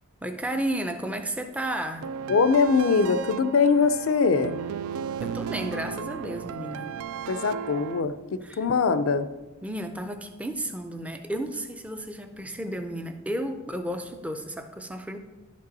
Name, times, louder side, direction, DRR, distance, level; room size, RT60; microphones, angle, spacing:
voice 1, 0.2-2.1 5.2-6.9 8.4-8.6 9.6-15.2, right 1 dB, 5° right, 6 dB, 0.4 m, -33 dB
sound 1, 2.0-8.0, right 7 dB, 90° right, 0.3 m, -35 dB
voice 2, 2.3-4.6 7.3-9.3, left 5 dB, 75° left, 12 dB, 0.4 m, -22 dB
11.5 x 5.3 x 4.0 m, 1.2 s
head